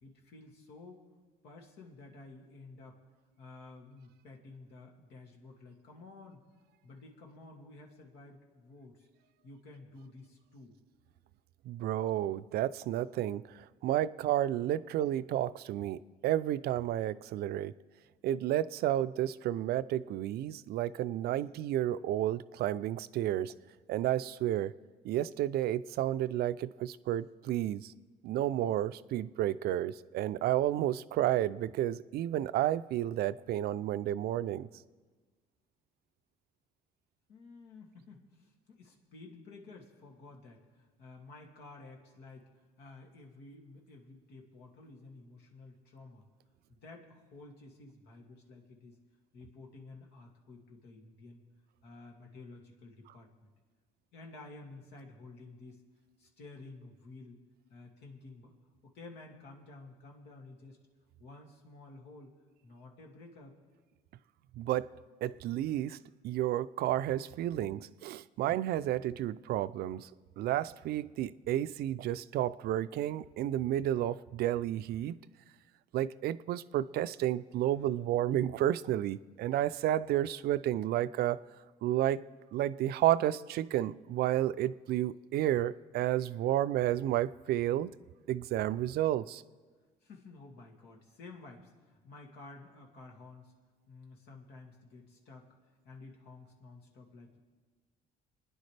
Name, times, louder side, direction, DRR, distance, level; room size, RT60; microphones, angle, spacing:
voice 1, 0.0-1.0 1.4-3.0 3.4-6.4 6.8-9.1 9.4-10.7 37.3-46.2 46.7-49.0 49.3-51.4 51.8-53.5 54.1-55.8 56.2-57.4 57.7-58.5 58.9-60.8 61.2-62.3 62.6-63.5 77.8-77.9 90.0-93.5 93.9-95.5 95.8-97.4, left 3 dB, 80° left, 2.3 m, -52 dB
voice 2, 11.7-13.4 13.8-17.7 18.2-23.5 23.9-24.7 25.0-27.9 28.2-34.7 64.6-64.9 65.2-66.0 66.2-70.1 70.4-75.2 75.9-81.4 81.8-82.2 82.5-87.9 88.3-89.4, right 13 dB, 70° right, 0.4 m, -31 dB
29.0 x 10.0 x 3.3 m
cardioid pair, 110°, 17 cm